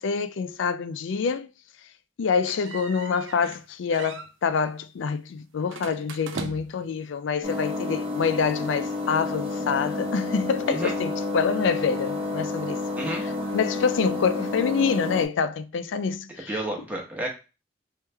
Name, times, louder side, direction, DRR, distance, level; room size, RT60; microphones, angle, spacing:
voice 1, 0.0-1.5 2.2-12.8 13.1-16.5, left 6 dB, 70° left, 0.4 m, -26 dB
sound 1, 2.5-3.6 3.9-4.3 5.7-6.9, right 4 dB, 75° right, 0.5 m, -38 dB
sound 2, 7.4-15.3, left 2 dB, 30° right, 0.9 m, -30 dB
voice 2, 16.5-17.3, right 1 dB, 10° right, 1.0 m, -30 dB
3.2 x 3.1 x 3.3 m
head